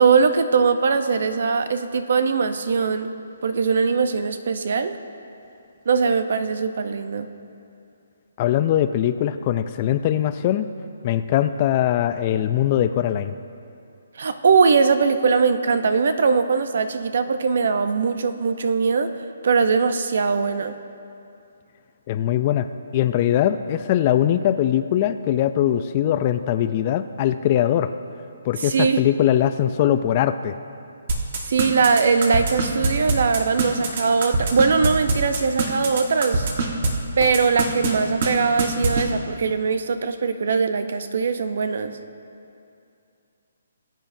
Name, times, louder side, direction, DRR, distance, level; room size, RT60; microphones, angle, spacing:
voice 1, 0.0-3.1 3.4-5.0 5.9-7.3 14.2-19.1 19.4-20.7 28.6-29.0 31.5-36.5 37.2-42.0, right 5 dB, 60° right, 9 dB, 0.7 m, -21 dB
voice 2, 8.4-10.7 11.0-13.3 22.1-22.7 22.9-27.9 28.4-30.6, left 11 dB, 30° left, 11 dB, 0.3 m, -21 dB
sound 1, 31.1-36.9 37.2-37.9 38.2-38.3 38.6-39.0, right 3 dB, 45° right, 1.3 m, -22 dB
19.5 x 9.1 x 2.7 m, 2.6 s
hypercardioid pair, 165°, 0 cm